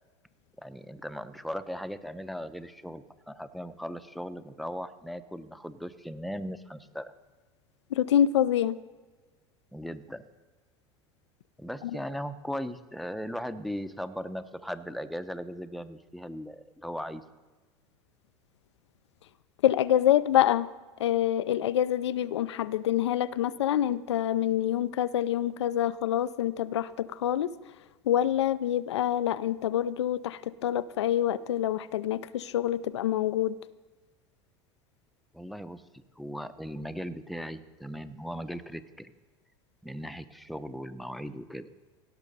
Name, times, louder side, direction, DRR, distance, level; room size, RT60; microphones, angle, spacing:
voice 1, 0.6-7.1 9.7-10.3 11.6-17.2 35.3-39.1 39.8-41.7, equal, ahead, 10 dB, 0.7 m, -38 dB
voice 2, 7.9-8.7 19.6-20.7 21.0-27.5 28.1-33.5, left 11 dB, 90° left, 15 dB, 0.4 m, -26 dB
17.0 x 6.2 x 5.4 m, 1.3 s
hypercardioid pair, 85°, 14 cm